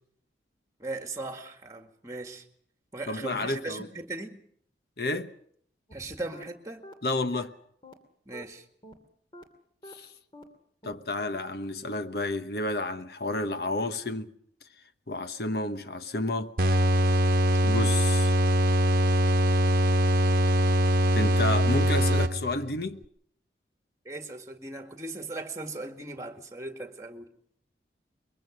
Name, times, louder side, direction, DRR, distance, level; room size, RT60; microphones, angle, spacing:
voice 1, 0.8-2.5 2.9-4.4 5.9-6.8 8.3-8.6 24.1-27.3, right 2 dB, 15° right, 2.0 m, -38 dB
voice 2, 3.1-3.9 5.0-5.3 7.0-7.5 9.9-10.1 10.8-14.3 15.1-16.5 17.6-18.3 21.1-23.0, left 2 dB, 60° left, 1.1 m, -31 dB
sound 1, 5.9-6.0 6.3-6.4 6.8-6.9 7.3-7.4 7.8-7.9 8.3-8.4 8.8-8.9 9.3-9.4 9.8-9.9 10.3-10.4 10.8-10.9 11.3-11.4, left 1 dB, 25° left, 2.6 m, -46 dB
sound 2, 16.6-22.7, equal, 50° right, 1.1 m, -22 dB
23.0 x 22.5 x 6.4 m
head